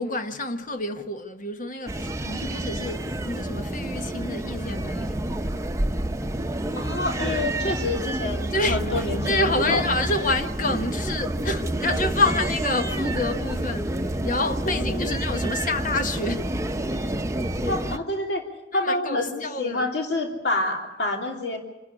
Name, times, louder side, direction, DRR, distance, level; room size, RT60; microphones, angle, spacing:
voice 1, 0.0-5.2 8.5-16.5 18.7-19.9, left 2 dB, 50° left, 1.2 m, -28 dB
sound 1, 1.9-18.0, right 1 dB, 15° right, 0.8 m, -28 dB
voice 2, 6.8-8.4 8.7-9.8 14.7-15.2 17.7-18.4 18.7-21.6, left 2 dB, 70° left, 2.9 m, -27 dB
26.5 x 11.0 x 9.8 m
head